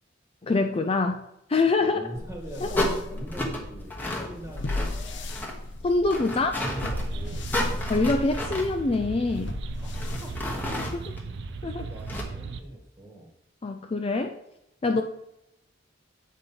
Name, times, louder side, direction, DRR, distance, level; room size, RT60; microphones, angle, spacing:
voice 1, 0.4-1.2 1.5-2.0 5.8-6.5 7.9-9.6 10.9-11.1 11.6-11.9 13.6-14.4 14.8-15.0, left 3 dB, 30° left, 5 dB, 0.4 m, -25 dB
voice 2, 1.8-5.4 6.2-7.9 9.7-10.4 10.9-11.1 11.8-13.3 14.9-15.0, right 1 dB, 15° right, 1 dB, 1.5 m, -43 dB
sound 1, 2.1-11.1, left 1 dB, 65° left, 0.7 m, -36 dB
sound 2, 2.7-12.2, left 1 dB, 10° left, 1.1 m, -34 dB
sound 3, 6.6-12.6, right 4 dB, 60° right, 0.5 m, -37 dB
8.2 x 4.2 x 5.4 m, 0.82 s
head